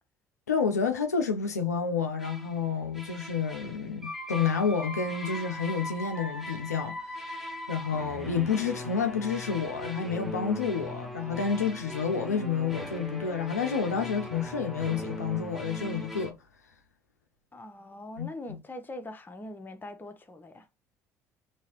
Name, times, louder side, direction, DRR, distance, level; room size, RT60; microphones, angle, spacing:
voice 1, 0.5-7.0 7.7-16.4 18.2-18.3, left 6 dB, 90° left, 0.4 m, -29 dB
sound 1, 2.2-2.6 2.9-16.3, left 1 dB, ahead, 1.0 m, -39 dB
voice 2, 17.5-20.7, left 1 dB, 25° left, 0.9 m, -42 dB
3.0 x 2.8 x 2.9 m
figure-of-eight pair, 50°, 8 cm